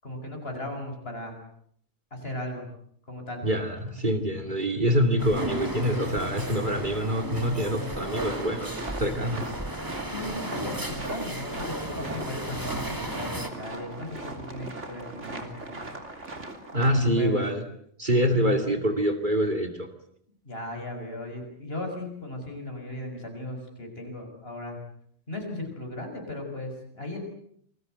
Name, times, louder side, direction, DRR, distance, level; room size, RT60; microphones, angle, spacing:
voice 1, 0.0-1.4 2.1-2.7 3.1-3.5 10.1-15.8 16.8-17.4 20.4-24.8 25.3-27.2, left 1 dB, 55° left, 3 dB, 6.6 m, -36 dB
voice 2, 3.4-9.5 16.7-17.6 18.0-19.9, equal, 40° right, 6 dB, 2.7 m, -25 dB
sound 1, 5.2-13.5, right 1 dB, 15° right, 2.5 m, -34 dB
sound 2, 8.1-16.9, right 2 dB, 75° right, 3.7 m, -39 dB
28.5 x 21.5 x 8.0 m, 0.66 s
omnidirectional pair, 1.2 m